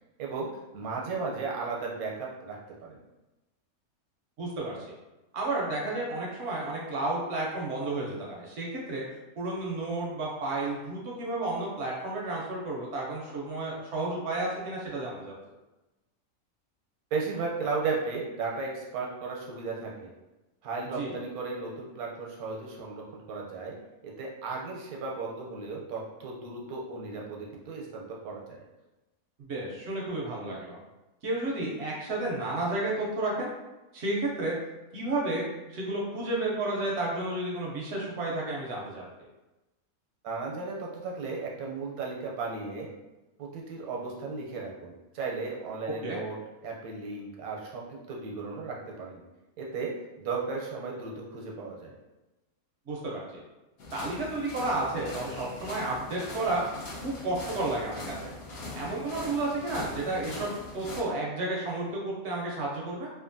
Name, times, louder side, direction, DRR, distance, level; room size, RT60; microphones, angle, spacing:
voice 1, 0.7-3.0 17.1-20.1 20.6-23.8 24.0-28.6 40.2-42.9 43.4-46.4 46.6-49.2 49.6-51.9, right 4 dB, 80° right, -1 dB, 1.1 m, -35 dB
voice 2, 4.4-5.0 5.3-9.0 9.4-15.3 20.9-21.1 29.4-30.8 31.2-33.5 33.9-34.5 34.9-39.0 46.0-46.2 52.9-53.4 53.9-58.3 58.8-60.5 60.7-63.1, right 2 dB, 60° right, -3 dB, 0.7 m, -32 dB
sound 1, 53.8-61.0, left 2 dB, 55° left, 0.7 m, -41 dB
2.8 x 2.4 x 2.5 m, 1.0 s
omnidirectional pair, 1.5 m